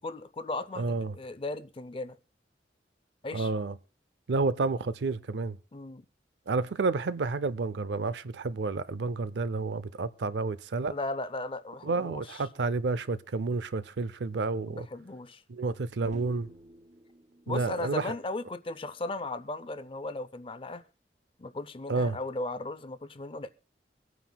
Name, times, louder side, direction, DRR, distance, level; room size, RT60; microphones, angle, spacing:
voice 1, 0.0-2.2 3.2-3.5 5.7-6.1 10.9-12.4 14.7-15.4 17.5-20.8 21.4-23.5, left 2 dB, 30° left, 0.5 m, -36 dB
voice 2, 0.8-1.1 3.3-3.8 4.3-5.6 6.5-10.9 11.8-14.9 15.5-16.5 17.5-18.1 21.9-22.2, right 3 dB, 75° right, 0.5 m, -30 dB
sound 1, 16.1-18.3, right 1 dB, 45° right, 3.2 m, -51 dB
24.0 x 9.3 x 2.3 m
head